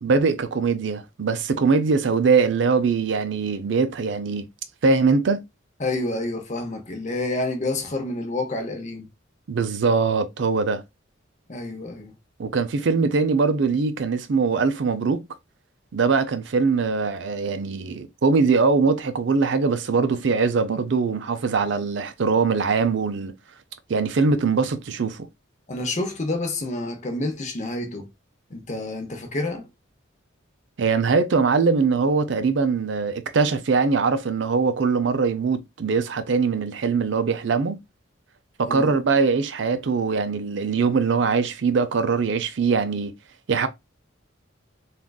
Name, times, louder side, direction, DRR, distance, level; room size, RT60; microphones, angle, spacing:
voice 1, 0.0-4.4 4.8-5.4 9.5-10.8 12.4-15.2 15.9-23.3 23.9-25.3 30.8-37.8 38.6-43.1 43.5-43.7, right 4 dB, 60° right, 0.4 m, -22 dB
voice 2, 5.8-9.1 11.5-12.1 25.7-28.1 28.5-29.7 38.6-38.9, left 2 dB, 35° left, 0.7 m, -28 dB
3.6 x 2.4 x 2.2 m
head